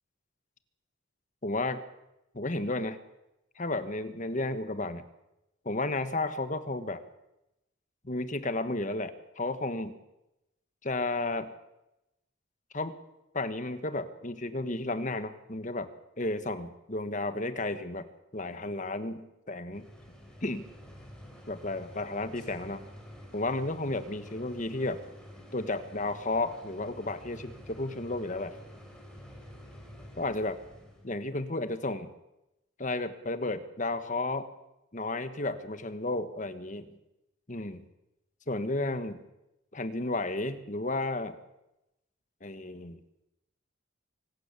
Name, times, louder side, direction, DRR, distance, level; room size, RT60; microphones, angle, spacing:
voice 1, 1.4-1.8 2.3-3.0 3.6-5.0 5.6-7.0 8.0-10.0 10.8-11.5 12.7-13.0 13.3-15.9 16.2-18.1 18.3-19.9 20.4-20.7 21.5-22.8 23.3-25.0 25.5-28.6 30.2-30.6 31.0-32.1 32.8-34.5 34.9-37.0 37.5-37.8 38.5-39.2 39.7-41.4 42.4-43.0, left 2 dB, 40° left, 11 dB, 1.4 m, -33 dB
sound 1, 19.7-31.1, equal, 5° left, 4.1 m, -49 dB
25.0 x 12.5 x 8.4 m, 0.90 s
head